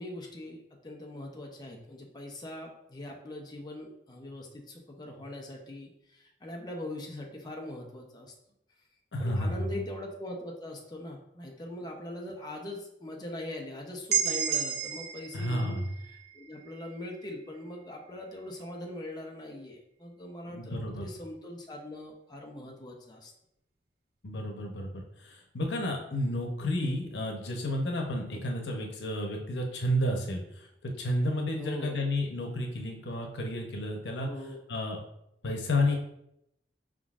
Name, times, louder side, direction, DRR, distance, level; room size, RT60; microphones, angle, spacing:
voice 1, 0.0-8.3 9.2-15.8 16.0-23.3 28.3-28.4 31.6-32.1 34.2-34.6, left 1 dB, 25° left, 0 dB, 0.6 m, -41 dB
voice 2, 9.1-9.8 15.3-15.8 20.5-21.1 24.2-25.0 25.5-30.4 31.0-34.3 34.7-35.0 35.4-36.0, left 1 dB, 85° left, 1 dB, 0.8 m, -31 dB
sound 1, 14.1-17.9, right 8 dB, 60° right, 0.5 m, -33 dB
5.0 x 3.7 x 2.4 m, 0.79 s
head